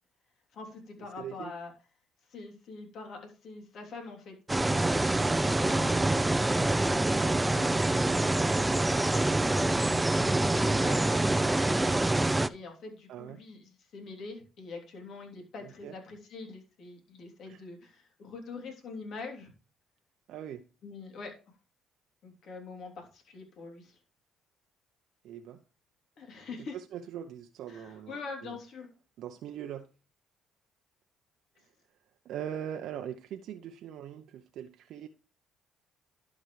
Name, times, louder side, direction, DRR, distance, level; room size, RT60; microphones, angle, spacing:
voice 1, 0.5-1.7 2.3-8.7 9.6-12.0 12.5-19.5 20.8-21.3 22.2-24.0 26.2-26.8 27.7-28.9, left 3 dB, 65° left, 3.1 m, -44 dB
voice 2, 1.2-1.5 13.1-13.4 15.6-15.9 17.5-17.6 20.3-20.6 25.2-25.6 26.7-28.2 28.4-28.6 29.2-29.9 31.6-31.7 32.2-35.1, right 9 dB, 70° right, 0.6 m, -41 dB
sound 1, 4.5-12.5, right 2 dB, 15° right, 0.5 m, -26 dB
11.5 x 6.0 x 3.2 m
supercardioid pair, 75°, 0 cm